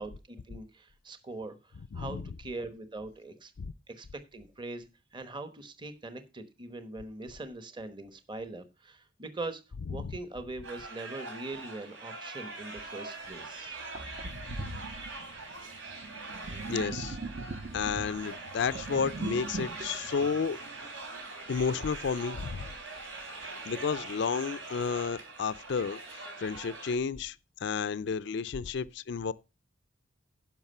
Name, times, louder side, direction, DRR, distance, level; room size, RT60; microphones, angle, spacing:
voice 1, 0.0-3.5 3.9-9.6 9.9-13.8, right 2 dB, 25° right, 1.1 m, -42 dB
voice 2, 1.9-2.2 3.6-3.7 10.0-10.1 16.7-17.2 17.5-20.6 21.5-22.7 23.7-27.4 27.6-29.3, left 5 dB, 60° left, 0.4 m, -32 dB
sound 1, 10.6-27.0, right 3 dB, 75° right, 3.9 m, -43 dB
Sink (filling or washing), 13.3-13.4 14.0-21.3, right 3 dB, 45° right, 0.7 m, -41 dB
10.5 x 6.1 x 5.5 m
head